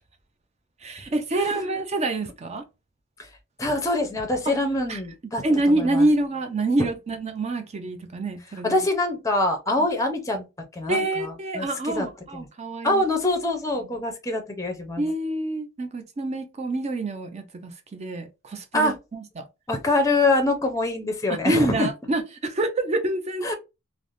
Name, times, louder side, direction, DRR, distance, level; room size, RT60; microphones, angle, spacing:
voice 1, 0.8-2.6 4.5-4.6 4.9-5.0 5.4-8.8 10.9-13.0 13.8-13.9 15.0-19.4 21.3-23.4, right 2 dB, 30° right, 0.5 m, -26 dB
voice 2, 1.3-1.6 3.6-6.1 6.8-6.9 8.6-10.4 10.7-11.7 11.9-12.1 12.3-12.5 12.8-15.1 18.7-18.9 19.7-21.9 23.4-23.5, left 2 dB, 15° left, 0.6 m, -25 dB
3.2 x 2.0 x 2.5 m
head